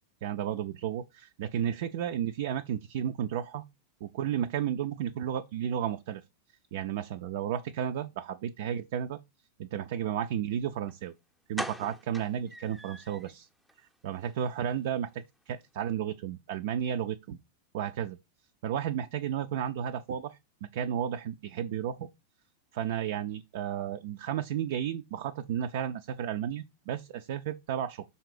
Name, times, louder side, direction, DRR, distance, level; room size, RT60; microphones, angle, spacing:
voice 1, 0.2-3.6 4.0-6.2 6.7-9.2 9.6-11.1 11.5-13.5 14.0-17.4 17.7-18.2 18.6-20.4 20.7-22.1 22.7-28.0, right 9 dB, 50° right, 0.4 m, -33 dB
sound 1, 10.9-11.0 11.5-13.3 13.7-13.8 14.2-14.3 14.6-14.7, equal, ahead, 0.6 m, -40 dB
5.7 x 4.1 x 4.8 m
figure-of-eight pair, 90°, 0 cm